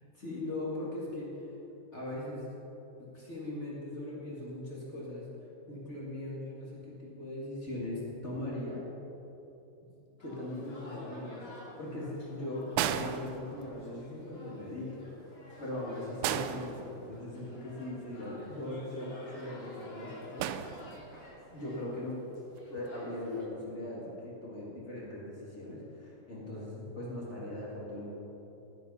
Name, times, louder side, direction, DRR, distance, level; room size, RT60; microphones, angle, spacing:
voice 1, 0.1-1.5 1.9-2.5 3.1-5.3 5.7-8.8 10.2-20.5 21.4-22.2 22.7-28.1, left 1 dB, 55° left, -6 dB, 0.7 m, -40 dB
sound 1, 10.2-23.4, left 1 dB, 35° left, 2.9 m, -52 dB
sound 2, 12.8-14.0 16.2-17.5 20.4-21.3 22.6-22.8, right 11 dB, 85° right, 2.8 m, -35 dB
16.5 x 7.6 x 5.6 m, 3.0 s
omnidirectional pair, 5.0 m